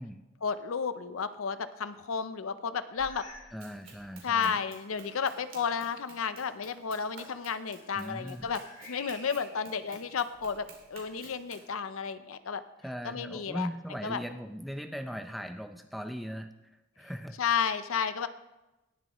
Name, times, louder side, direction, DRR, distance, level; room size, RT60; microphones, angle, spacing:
voice 1, 0.4-3.3 4.2-8.6 8.9-12.6 13.0-13.7 14.0-14.2 17.4-18.3, left 6 dB, 90° left, 12 dB, 0.6 m, -32 dB
sound 1, 3.0-3.6 3.9-4.2 4.9-5.0 7.4-9.7 10.3-11.3, left 2 dB, 40° left, 2.0 m, -51 dB
voice 2, 3.5-4.6 7.9-8.5 12.8-16.5 17.0-17.4, equal, ahead, 6 dB, 0.5 m, -39 dB
Run, 3.6-11.7, right 4 dB, 75° right, 2.7 m, -53 dB
19.0 x 7.2 x 3.0 m, 1.0 s
head